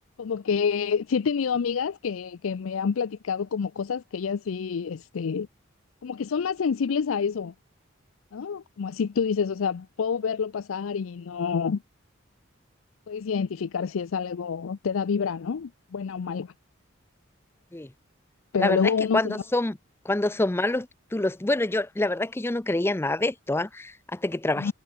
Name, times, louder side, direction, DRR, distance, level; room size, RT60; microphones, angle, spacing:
voice 1, 0.2-5.5 6.0-7.5 8.3-11.8 13.1-16.5 18.5-19.4 24.6-24.7, left 6 dB, 85° left, 0.5 m, -28 dB
voice 2, 18.6-19.8 20.0-24.7, left 2 dB, 10° left, 0.5 m, -26 dB
head